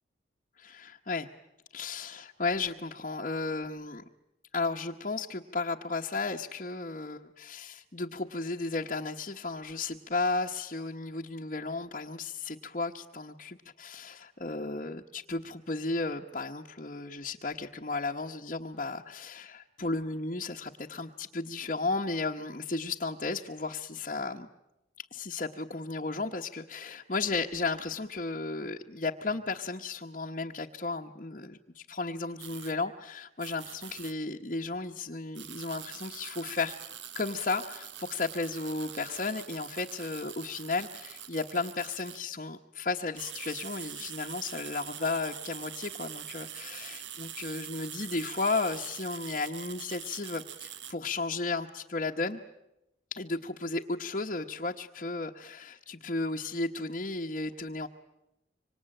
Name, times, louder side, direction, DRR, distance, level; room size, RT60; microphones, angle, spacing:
voice 1, 0.6-1.3 1.7-4.0 4.5-24.5 25.0-36.8 37.1-52.4 53.1-57.9, left 3 dB, 45° left, 0 dB, 1.1 m, -34 dB
sound 1, 32.4-32.7 33.4-34.1 35.4-42.2 43.0-50.9, right 10 dB, 85° right, 1.3 m, -44 dB
26.0 x 25.5 x 8.9 m, 0.90 s
head